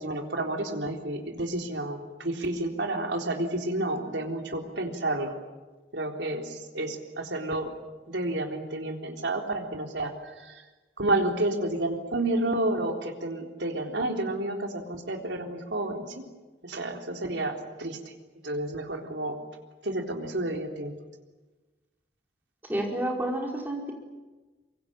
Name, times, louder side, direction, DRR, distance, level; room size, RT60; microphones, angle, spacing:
voice 1, 0.0-5.3 5.9-7.7 8.1-10.6 11.0-16.2 16.6-18.0 18.4-19.4 19.8-20.9, right 1 dB, 85° right, 3 dB, 3.9 m, -30 dB
voice 2, 22.7-23.9, right 1 dB, 10° right, 0 dB, 5.0 m, -29 dB
24.5 x 24.0 x 8.9 m, 1.2 s
head